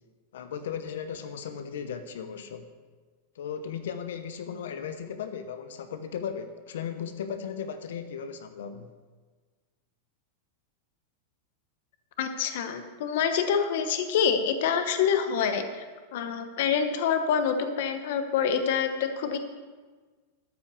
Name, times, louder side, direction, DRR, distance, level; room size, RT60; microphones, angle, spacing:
voice 1, 0.3-2.7 3.3-8.9, left 7 dB, 80° left, 9 dB, 0.9 m, -36 dB
voice 2, 12.2-15.8 16.1-19.4, left 7 dB, 50° left, 7 dB, 0.9 m, -26 dB
13.0 x 5.7 x 6.9 m, 1.4 s
supercardioid pair, 180°, 0 cm